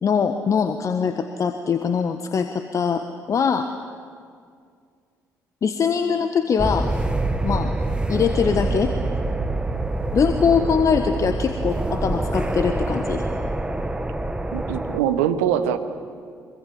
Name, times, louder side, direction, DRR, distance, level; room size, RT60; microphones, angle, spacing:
voice 1, 0.0-3.7 5.6-6.9 7.4-7.7 8.1-8.9 10.1-13.2, left 6 dB, 40° left, 8 dB, 1.3 m, -22 dB
sound 1, 6.6-15.0, right 2 dB, 10° right, 1.5 m, -25 dB
voice 2, 14.5-15.8, right 10 dB, 70° right, 9 dB, 1.3 m, -22 dB
25.0 x 23.5 x 7.5 m, 2.2 s
figure-of-eight pair, 45°, 8 cm